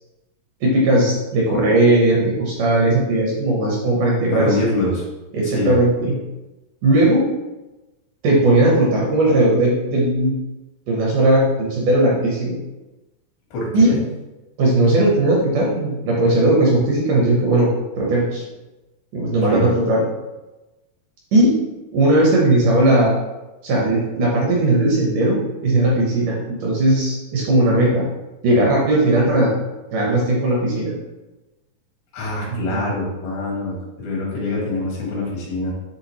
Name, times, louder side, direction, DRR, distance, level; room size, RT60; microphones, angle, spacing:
voice 1, 0.6-4.5 5.3-6.1 6.8-7.3 8.2-10.4 10.9-12.6 13.7-13.9 14.6-18.4 19.1-20.0 21.3-21.7 21.9-23.2 23.6-28.1 28.4-29.5 29.9-30.9 32.5-32.9, right 1 dB, 70° right, -3 dB, 2.2 m, -17 dB
voice 2, 4.3-5.1 5.4-5.7 13.5-14.0 19.5-19.7 32.1-35.7, left 2 dB, 90° left, -4 dB, 4.2 m, -24 dB
9.8 x 3.6 x 3.1 m, 1.1 s
omnidirectional pair, 4.8 m